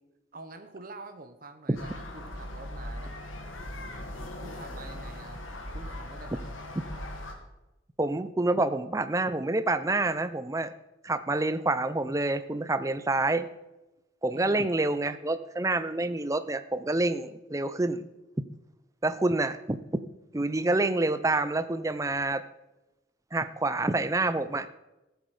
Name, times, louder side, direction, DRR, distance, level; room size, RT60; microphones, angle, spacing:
voice 1, 0.3-3.1 4.4-5.4 5.7-6.6 14.3-14.7, right 2 dB, 45° right, 8 dB, 0.9 m, -46 dB
sound 1, 1.8-7.3, left 1 dB, 85° left, 1.9 m, -39 dB
voice 2, 8.0-10.7 11.0-13.5 14.2-18.1 19.0-19.8 20.3-22.4 23.3-24.7, right 2 dB, 15° right, 12 dB, 0.5 m, -27 dB
14.5 x 8.1 x 4.9 m, 1.0 s
head